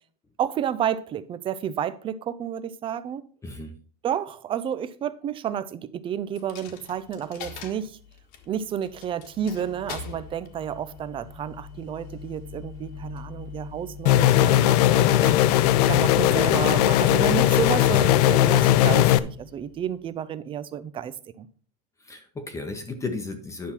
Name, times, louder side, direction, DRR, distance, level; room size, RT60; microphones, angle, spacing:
voice 1, 0.4-3.3 4.0-8.0 8.5-15.4 15.8-21.5, right 9 dB, 25° right, 0.6 m, -31 dB
voice 2, 3.4-3.7 22.0-23.7, left 3 dB, 15° left, 1.0 m, -34 dB
Coin (dropping), 6.4-20.1, left 5 dB, 50° left, 1.6 m, -42 dB
sound 1, 14.1-19.2, left 13 dB, 70° left, 0.6 m, -18 dB
10.0 x 5.7 x 4.3 m
supercardioid pair, 135°, 21 cm